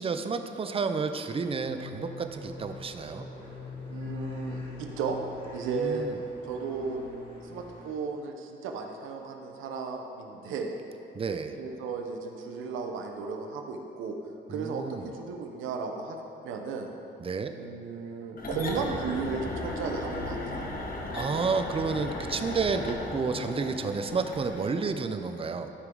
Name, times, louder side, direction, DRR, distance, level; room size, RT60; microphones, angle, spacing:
voice 1, 0.0-3.3 5.7-6.2 11.1-11.6 14.5-15.1 17.2-17.5 21.1-25.7, right 4 dB, 30° right, 8 dB, 0.6 m, -31 dB
sound 1, 1.3-7.9, left 3 dB, 25° left, 2.1 m, -42 dB
voice 2, 3.9-5.2 5.5-6.1 6.5-7.0 7.4-10.7 11.6-14.2 14.5-16.2 16.4-16.9 17.5-20.7, right 5 dB, 90° right, 4 dB, 0.9 m, -34 dB
sound 2, 18.4-24.8, left 2 dB, 45° left, 1.3 m, -36 dB
12.5 x 5.9 x 3.9 m, 2.7 s
cardioid pair, 90°, 20 cm